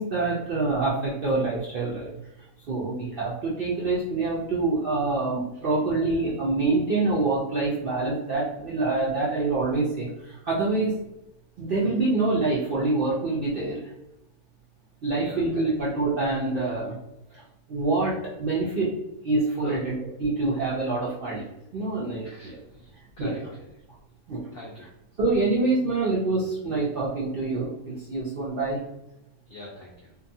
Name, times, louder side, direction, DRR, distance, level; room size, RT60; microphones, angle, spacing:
voice 1, 0.0-2.1 2.7-10.9 11.6-13.9 15.0-17.0 17.3-17.4 17.7-18.9 19.2-20.0 20.2-21.4 21.7-22.6 23.2-23.3 24.3-24.4 25.2-28.8, right 3 dB, 65° right, -7 dB, 0.5 m, -26 dB
voice 2, 15.1-15.7 17.3-17.5 19.6-19.8 22.2-23.8 24.5-24.9 29.5-30.1, left 2 dB, 75° left, -3 dB, 0.5 m, -42 dB
2.6 x 2.3 x 2.6 m, 0.90 s
omnidirectional pair, 1.6 m